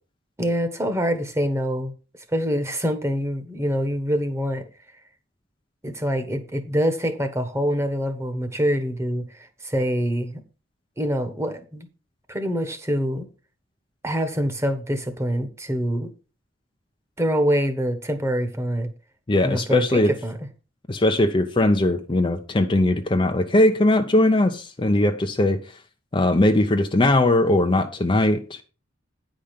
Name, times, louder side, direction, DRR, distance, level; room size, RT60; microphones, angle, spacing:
voice 1, 0.4-1.9 2.3-4.6 5.8-10.4 11.0-11.9 12.3-13.3 14.0-16.1 17.2-18.9 19.4-20.4, equal, 15° right, 1.3 m, -25 dB
voice 2, 19.3-20.1 20.9-25.8 26.1-28.6, left 1 dB, 25° left, 0.7 m, -20 dB
9.9 x 5.1 x 5.7 m
head